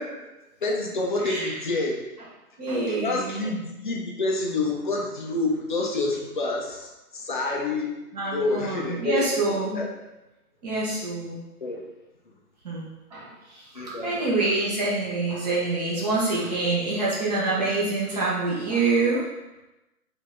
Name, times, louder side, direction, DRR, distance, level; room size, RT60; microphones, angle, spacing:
voice 1, 0.6-2.0 2.9-8.0 8.3-9.2 9.7-9.9 11.6-11.8 13.7-14.2, left 2 dB, 35° left, -1 dB, 0.6 m, -28 dB
voice 2, 1.2-1.6 2.6-3.4 8.1-9.8 10.6-11.4 12.6-19.2, right 3 dB, 25° right, -6 dB, 1.1 m, -26 dB
4.9 x 2.8 x 3.5 m, 0.98 s
figure-of-eight pair, 145°, 46 cm